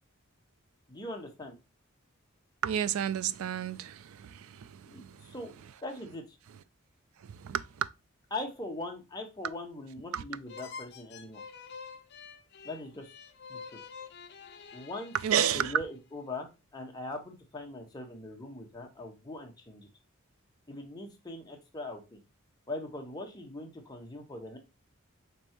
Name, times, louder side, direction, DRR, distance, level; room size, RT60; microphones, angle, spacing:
voice 1, 0.9-1.5 4.9-5.5 5.8-6.4 8.3-11.4 12.6-13.1 13.5-13.8 14.7-15.1 15.5-19.9 20.7-22.2 22.7-24.6, left 2 dB, 20° left, 0.9 m, -41 dB
voice 2, 2.6-5.3 7.2-7.9 10.1-10.2 15.2-15.7, right 9 dB, 75° right, 0.3 m, -31 dB
sound 1, 10.5-16.0, left 5 dB, 50° left, 0.6 m, -48 dB
5.2 x 3.2 x 2.9 m
head